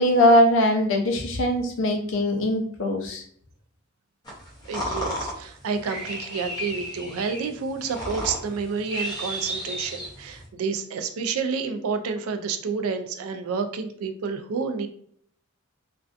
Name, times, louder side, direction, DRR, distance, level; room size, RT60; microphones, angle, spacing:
voice 1, 0.0-3.2, left 1 dB, 60° left, 3 dB, 0.5 m, -21 dB
sound 1, 4.3-10.5, equal, 20° left, 0.6 m, -33 dB
voice 2, 4.7-14.9, right 5 dB, 75° right, 7 dB, 0.4 m, -29 dB
2.5 x 2.2 x 2.4 m, 0.62 s
head